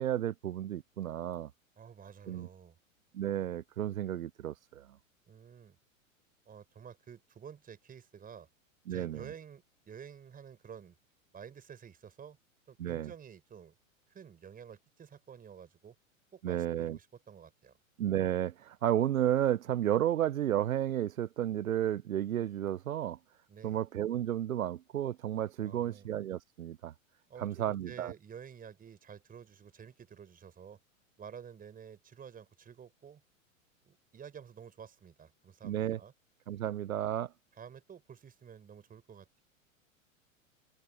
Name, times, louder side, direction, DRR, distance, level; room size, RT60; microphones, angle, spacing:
voice 1, 0.0-1.5 2.3-2.5 3.1-4.9 8.9-9.2 12.8-13.1 16.4-17.0 18.0-23.2 23.6-26.9 27.4-28.1 35.6-36.0 36.5-37.3, right 11 dB, 85° right, 0.6 m, -32 dB
voice 2, 1.8-2.8 5.3-5.8 6.5-8.5 8.9-11.0 11.3-12.4 12.7-13.8 14.1-16.0 16.3-17.7 23.5-23.8 25.6-26.1 27.3-30.8 31.2-33.2 33.8-36.1 36.6-36.7 37.5-39.4, right 7 dB, 20° right, 5.6 m, -51 dB
hypercardioid pair, 100°, 41 cm